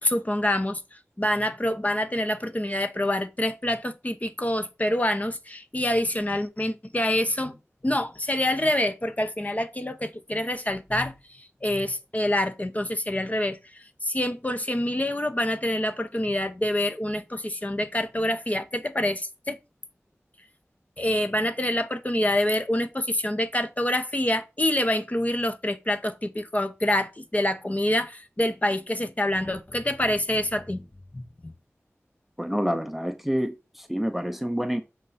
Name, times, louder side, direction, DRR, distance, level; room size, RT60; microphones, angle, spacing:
voice 1, 0.0-0.8 1.2-7.6 7.8-19.6 21.0-30.8 31.1-31.5, left 1 dB, 30° left, 0.8 m, -26 dB
voice 2, 32.4-34.8, equal, 5° right, 0.6 m, -28 dB
7.3 x 3.7 x 4.2 m
wide cardioid pair, 50°, 5 cm